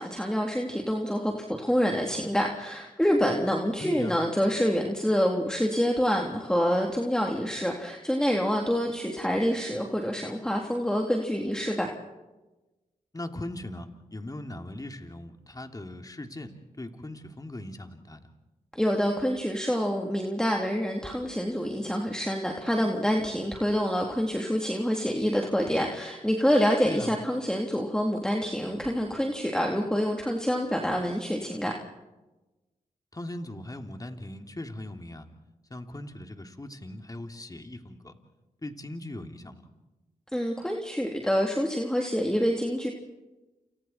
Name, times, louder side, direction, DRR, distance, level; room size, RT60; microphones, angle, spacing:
voice 1, 0.0-1.3 1.6-11.9 18.7-31.7 40.3-42.9, equal, 5° left, 1 dB, 3.6 m, -27 dB
voice 2, 3.8-4.2 13.1-16.5 16.8-18.3 26.8-27.1 33.1-35.3 35.7-38.1 38.6-39.6, left 1 dB, 25° left, 5 dB, 3.2 m, -39 dB
29.0 x 29.0 x 4.6 m, 1.1 s
supercardioid pair, 45°, 15 cm